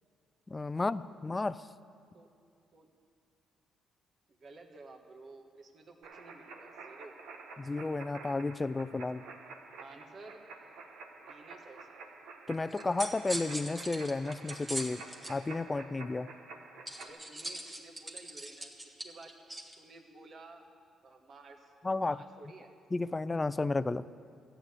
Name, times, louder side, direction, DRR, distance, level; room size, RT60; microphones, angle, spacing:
voice 1, 0.5-1.7 7.6-9.2 12.5-15.0 15.3-16.3 21.8-22.2 22.9-24.1, left 3 dB, 20° left, 16 dB, 0.4 m, -32 dB
voice 2, 4.4-7.1 9.8-10.4 11.2-12.1 16.9-19.4 19.8-20.7 21.0-21.7 22.0-22.7, right 3 dB, 55° right, 3 dB, 1.6 m, -53 dB
sound 1, 6.0-17.1, right 4 dB, 85° right, 1.2 m, -49 dB
sound 2, 12.7-15.3 16.9-19.7, right 1 dB, 20° right, 1.5 m, -41 dB
14.0 x 9.0 x 8.0 m, 2.4 s
cardioid pair, 90°, 0 cm